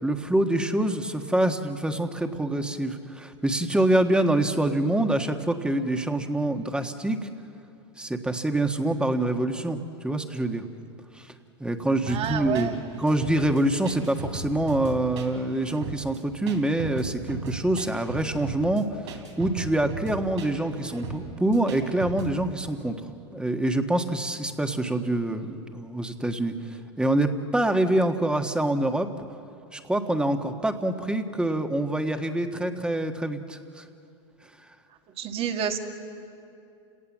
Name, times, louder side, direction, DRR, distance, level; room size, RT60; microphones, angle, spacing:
voice 1, 0.0-7.3 8.0-10.7 11.1-11.3 11.6-22.9 23.3-29.1 29.7-33.8, right 1 dB, 5° right, 6 dB, 1.5 m, -26 dB
voice 2, 12.1-12.8 35.2-35.8, right 8 dB, 40° right, 5 dB, 2.0 m, -29 dB
sound 1, 12.1-22.3, right 4 dB, 80° right, 4.1 m, -37 dB
30.0 x 18.0 x 7.4 m, 2.6 s
hypercardioid pair, 105°, 15 cm